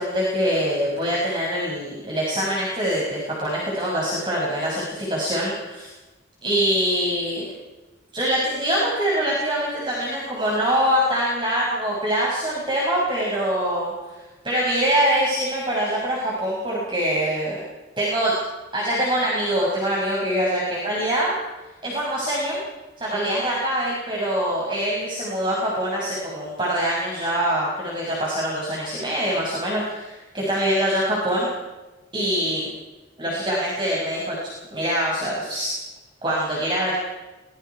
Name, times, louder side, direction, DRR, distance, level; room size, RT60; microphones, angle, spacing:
voice 1, 0.0-5.9 6.4-7.4 8.1-13.9 14.4-17.6 18.0-18.3 18.7-21.4 21.8-22.6 23.0-31.5 32.1-32.7 33.2-34.4 34.7-35.7 36.2-36.9, equal, 25° right, -5 dB, 6.6 m, -24 dB
25.5 x 23.0 x 4.8 m, 1.1 s
head